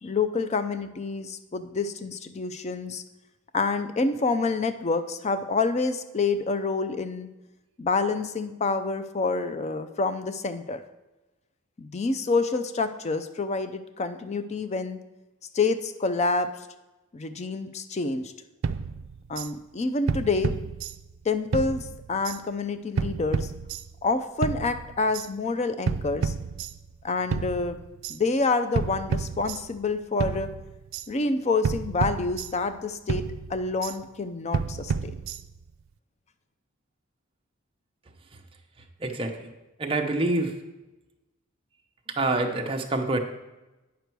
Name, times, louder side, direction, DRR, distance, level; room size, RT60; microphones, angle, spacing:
voice 1, 0.0-3.0 3.5-7.3 7.8-10.8 11.8-15.0 15.5-16.5 17.1-18.3 19.3-20.5 21.2-23.5 24.0-26.3 27.0-27.8 28.1-30.5 31.1-35.1, left 3 dB, 30° left, 10 dB, 0.4 m, -27 dB
sound 1, 18.6-19.5 20.1-21.2 21.5-22.4 23.0-24.1 24.4-25.3 25.9-27.0 27.3-28.2 28.8-29.9 30.2-31.1 31.6-32.8 33.1-34.0 34.5-35.7, right 5 dB, 70° right, 0.4 m, -31 dB
voice 2, 39.0-39.5 39.8-40.5 42.2-43.2, right 2 dB, 25° right, 2 dB, 0.8 m, -26 dB
9.2 x 6.7 x 4.6 m, 1.1 s
head